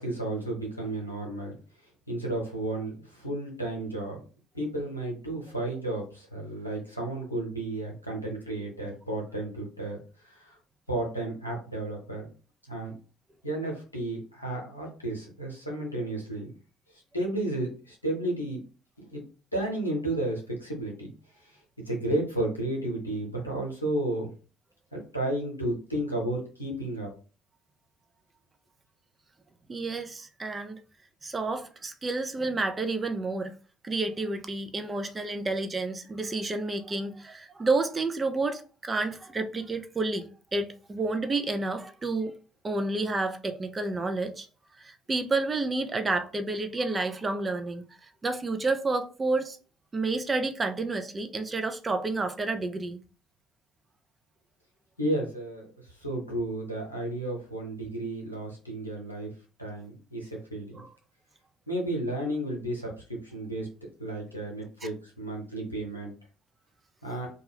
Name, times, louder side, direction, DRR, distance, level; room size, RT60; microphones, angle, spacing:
voice 1, 0.0-1.6 2.1-4.2 4.5-10.0 10.3-10.5 10.9-12.3 12.7-12.9 13.4-16.5 17.1-18.6 19.1-19.2 19.5-21.1 21.9-24.3 24.9-27.1 55.0-55.6 56.0-59.3 59.6-60.7 61.7-62.9 63.3-63.7 64.0-66.1 67.0-67.3, right 1 dB, 90° left, 0.8 m, -32 dB
voice 2, 29.7-30.8 31.2-33.5 33.8-42.4 42.6-44.5 44.8-47.8 48.2-49.6 49.9-53.0 60.7-60.9 64.8-64.9, right 3 dB, 25° right, 0.4 m, -30 dB
2.4 x 2.2 x 3.3 m
figure-of-eight pair, 55°, 0 cm